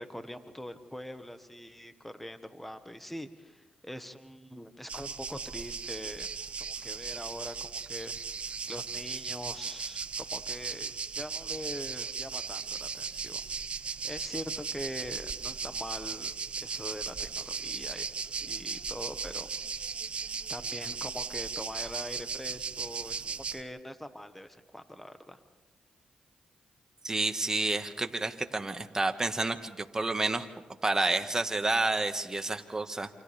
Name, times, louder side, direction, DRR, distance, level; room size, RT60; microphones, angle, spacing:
voice 1, 0.0-6.3 6.6-8.2 8.7-13.4 13.8-16.3 16.6-18.1 18.4-19.5 20.5-25.4, equal, 5° left, 9 dB, 1.6 m, -43 dB
sound 1, 4.9-23.6, right 5 dB, 50° right, 0.9 m, -37 dB
voice 2, 27.0-30.5 30.8-33.1, right 2 dB, 25° right, 6 dB, 1.8 m, -29 dB
28.5 x 27.5 x 3.6 m, 1.2 s
cardioid pair, 60°, 2 cm